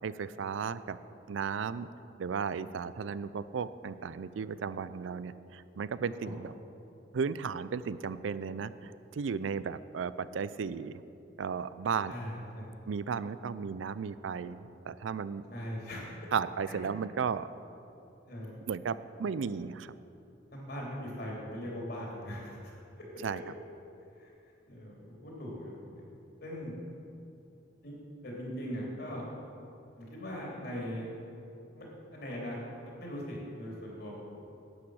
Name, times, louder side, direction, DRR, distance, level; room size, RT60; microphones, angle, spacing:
voice 1, 0.0-1.0 1.3-1.9 2.2-6.5 7.1-11.0 11.4-12.1 12.9-15.4 16.3-17.5 18.7-19.9 23.2-23.4, right 6 dB, 85° right, 15 dB, 0.4 m, -35 dB
voice 2, 12.1-12.7 15.5-16.1 16.7-16.8 18.3-18.5 20.5-22.7 24.1-24.3 24.7-26.0 26.4-26.7 27.8-27.9 28.2-29.3 29.9-31.1 31.7-31.8 32.1-34.2, equal, 55° left, -3 dB, 3.1 m, -40 dB
11.5 x 8.7 x 6.3 m, 2.8 s
head